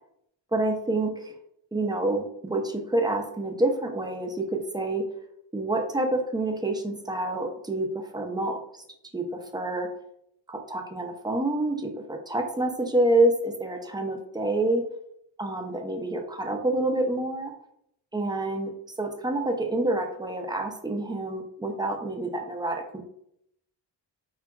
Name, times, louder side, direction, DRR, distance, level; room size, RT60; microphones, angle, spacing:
voice 1, 0.5-1.3 1.7-5.1 5.5-8.6 9.1-9.9 10.5-14.8 15.4-17.5 18.1-18.7 19.0-23.1, right 2 dB, 10° right, 4 dB, 0.3 m, -27 dB
3.6 x 2.3 x 2.2 m, 0.74 s
cardioid pair, 75°, 46 cm